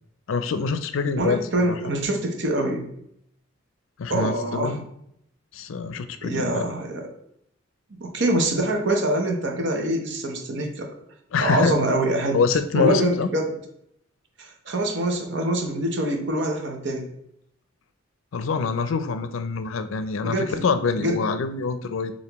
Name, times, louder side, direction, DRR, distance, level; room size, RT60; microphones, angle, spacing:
voice 1, 0.3-1.4 1.7-1.8 4.0-4.8 5.5-6.7 11.3-11.7 12.3-13.3 18.3-22.1, left 5 dB, 90° left, 10 dB, 0.4 m, -25 dB
voice 2, 1.2-2.9 4.1-4.8 6.2-7.1 8.0-10.9 11.4-12.4 12.7-13.5 14.4-17.1 20.2-20.5 20.9-21.2, right 1 dB, 65° right, 3 dB, 0.8 m, -25 dB
6.7 x 2.6 x 3.0 m, 0.74 s
head